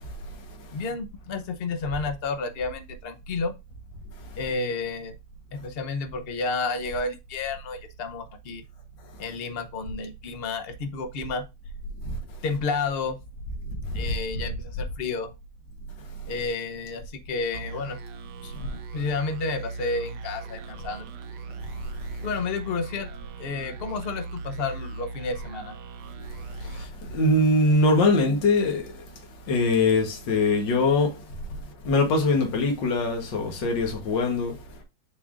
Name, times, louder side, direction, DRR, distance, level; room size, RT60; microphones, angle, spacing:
voice 1, 0.7-3.5 4.4-5.1 5.5-8.6 9.2-11.5 12.4-13.2 13.9-15.3 16.3-18.0 18.4-21.1 22.2-23.1 23.4-25.8, left 4 dB, 50° left, 0.7 m, -31 dB
sound 1, 17.5-27.8, right 3 dB, 70° right, 1.3 m, -39 dB
voice 2, 26.6-29.0 29.5-31.2 31.8-34.6, left 2 dB, 75° left, 1.9 m, -22 dB
11.0 x 3.7 x 2.5 m
omnidirectional pair, 2.0 m